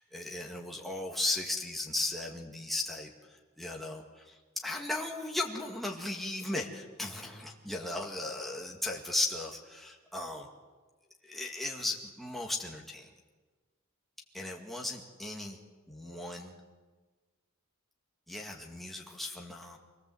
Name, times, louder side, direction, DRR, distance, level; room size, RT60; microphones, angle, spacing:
voice 1, 0.1-10.5 11.2-13.1 14.3-15.6 15.9-16.6 18.3-19.8, left 2 dB, ahead, -1 dB, 2.1 m, -36 dB
25.5 x 18.5 x 8.0 m, 1.4 s
head